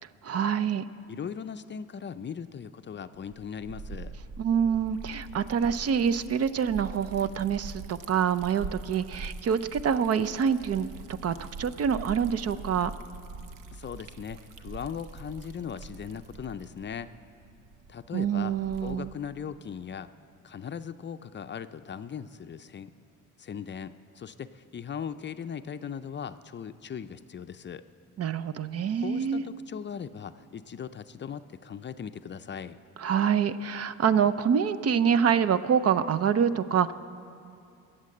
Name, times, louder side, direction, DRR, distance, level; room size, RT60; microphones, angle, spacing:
voice 1, 0.2-0.8 4.4-10.9 11.2-12.9 18.1-19.1 28.2-29.4 33.0-36.9, right 7 dB, 50° right, 13 dB, 0.6 m, -26 dB
voice 2, 1.1-4.1 13.7-17.1 17.9-20.1 20.4-22.9 23.4-27.8 29.0-32.8, left 7 dB, 35° left, 11 dB, 0.5 m, -39 dB
Liquid, 3.1-19.2, right 3 dB, 80° right, 0.8 m, -44 dB
22.0 x 7.4 x 7.7 m, 2.5 s
cardioid pair, 90°, 32 cm